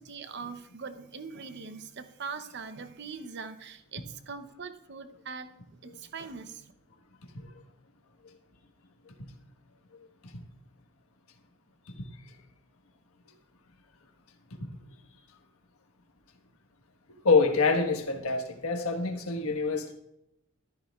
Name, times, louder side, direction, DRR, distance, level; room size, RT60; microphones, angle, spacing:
voice 1, 0.0-6.7, right 5 dB, 50° right, 9 dB, 0.7 m, -42 dB
voice 2, 17.2-19.9, left 4 dB, 80° left, 4 dB, 1.4 m, -26 dB
15.0 x 13.0 x 2.4 m, 0.82 s
head